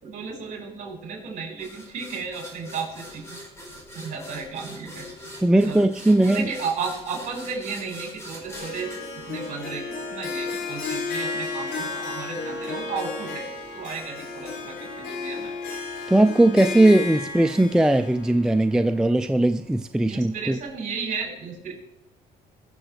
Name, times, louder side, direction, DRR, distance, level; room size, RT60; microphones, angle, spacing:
voice 1, 0.0-3.4 3.9-5.1 5.6-8.9 9.3-9.8 10.1-13.5 13.7-15.5 20.1-21.7, right 5 dB, 50° right, 5.4 m, -34 dB
sound 1, 1.6-10.1, equal, 15° left, 4.3 m, -43 dB
voice 2, 5.4-6.5 16.1-20.6, right 1 dB, 5° right, 0.3 m, -19 dB
Harp, 8.5-19.7, left 4 dB, 85° left, 5.4 m, -33 dB
21.5 x 7.2 x 3.3 m
cardioid pair, 110°, 17 cm